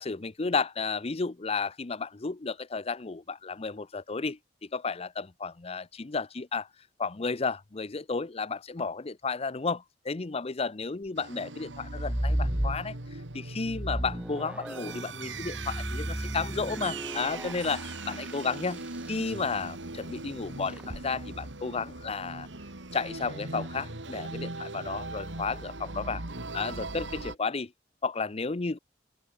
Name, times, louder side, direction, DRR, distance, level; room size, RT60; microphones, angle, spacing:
voice 1, 0.0-4.4 4.7-6.7 7.0-13.0 13.3-18.8 19.1-22.5 22.9-26.2 26.5-27.7 28.0-28.8, left 4 dB, 35° left, 0.6 m, -32 dB
sound 1, 11.2-27.4, right 3 dB, 80° right, 2.6 m, -40 dB
sound 2, 11.8-13.2 13.6-19.2 20.7-21.0, equal, 5° right, 0.6 m, -34 dB
open air
head